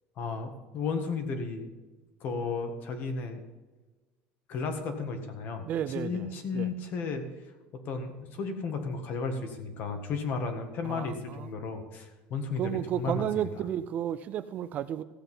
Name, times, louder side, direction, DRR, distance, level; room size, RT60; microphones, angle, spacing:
voice 1, 0.2-1.7 2.2-3.4 4.5-5.7 5.9-7.2 7.8-13.4, left 4 dB, 40° left, 1.7 m, -34 dB
voice 2, 5.6-6.3 6.5-6.7 10.8-11.5 12.6-15.0, right 10 dB, 35° right, 0.4 m, -32 dB
15.0 x 8.0 x 5.5 m
cardioid pair, 170°, 5 cm